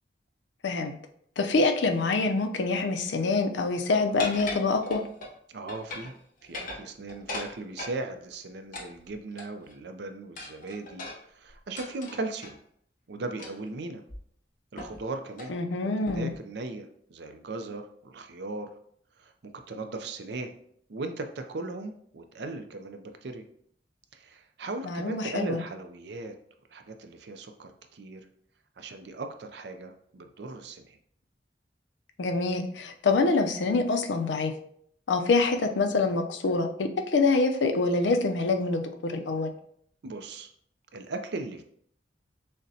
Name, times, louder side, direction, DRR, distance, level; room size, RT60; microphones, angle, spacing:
voice 1, 0.6-1.0 1.4-5.0 15.5-16.3 24.8-25.6 32.2-34.5 35.1-39.5, left 3 dB, 90° left, 6 dB, 0.5 m, -25 dB
sound 1, 4.2-5.3 5.7-6.2 6.4-8.0 8.7-9.7 10.4-12.6 13.4-13.7 14.1-14.2 14.8-15.0 15.3-15.6 16.1-16.4, left 2 dB, 50° left, 0.8 m, -39 dB
voice 2, 5.5-6.1 6.4-12.6 13.1-14.0 14.7-15.5 16.1-18.7 19.2-20.6 20.9-23.4 24.1-26.3 26.7-28.3 28.8-31.0 40.0-40.5 40.9-41.6, right 2 dB, 65° right, 6 dB, 0.5 m, -38 dB
6.4 x 2.2 x 2.7 m, 0.64 s
head